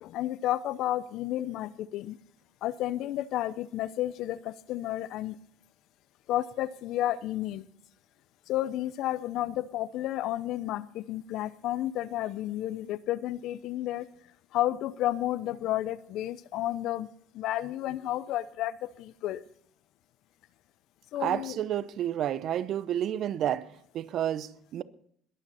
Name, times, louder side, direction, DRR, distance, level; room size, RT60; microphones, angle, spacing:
voice 1, 0.0-2.2 2.6-5.4 6.3-7.6 8.5-14.1 14.5-17.1 17.3-19.4 21.1-21.6, left 13 dB, 65° left, 0.8 m, -31 dB
voice 2, 21.2-24.8, right 10 dB, 55° right, 0.8 m, -30 dB
21.5 x 8.9 x 4.2 m
supercardioid pair, 85°, 0 cm